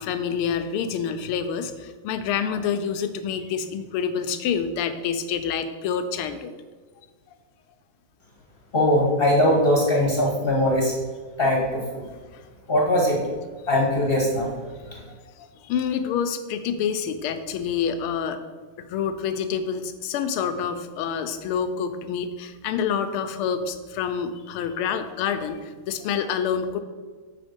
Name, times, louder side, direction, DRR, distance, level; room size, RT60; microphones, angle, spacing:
voice 1, 0.0-6.5 12.3-12.4 15.2-18.4 18.8-26.8, left 7 dB, 85° left, 8 dB, 1.5 m, -27 dB
voice 2, 8.7-10.9 11.4-12.0 12.7-13.2 13.7-14.5 14.9-15.0, left 1 dB, 35° left, -1 dB, 1.1 m, -21 dB
7.1 x 5.0 x 5.2 m, 1.4 s
omnidirectional pair, 2.3 m